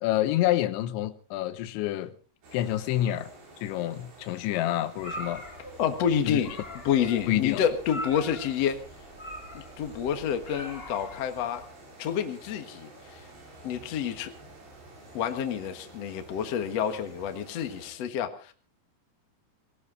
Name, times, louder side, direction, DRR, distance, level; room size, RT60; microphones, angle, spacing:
voice 1, 0.0-2.1 2.5-3.3 3.6-5.4 6.3-6.4 7.3-7.6, left 13 dB, 90° left, 3.3 m, -28 dB
sound 1, 2.4-17.9, right 2 dB, 75° right, 8.9 m, -50 dB
sound 2, 5.0-11.6, left 1 dB, 20° left, 1.9 m, -42 dB
voice 2, 5.8-6.5 6.8-8.8 9.5-11.6 12.0-13.3 13.6-14.3 15.1-18.5, left 8 dB, 55° left, 1.8 m, -28 dB
20.0 x 18.0 x 3.9 m
omnidirectional pair, 5.1 m